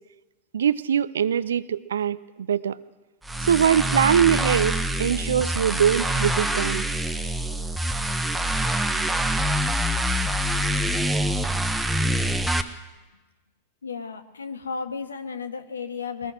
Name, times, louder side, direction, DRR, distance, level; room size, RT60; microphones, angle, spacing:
voice 1, 0.5-2.8 3.4-6.9, right 8 dB, 65° right, 17 dB, 0.7 m, -22 dB
sound 1, 3.2-12.6, right 1 dB, 5° right, 1.2 m, -25 dB
voice 2, 13.8-16.3, left 5 dB, 75° left, 9 dB, 1.5 m, -33 dB
22.5 x 19.0 x 6.3 m, 1.2 s
figure-of-eight pair, 90°, 0 cm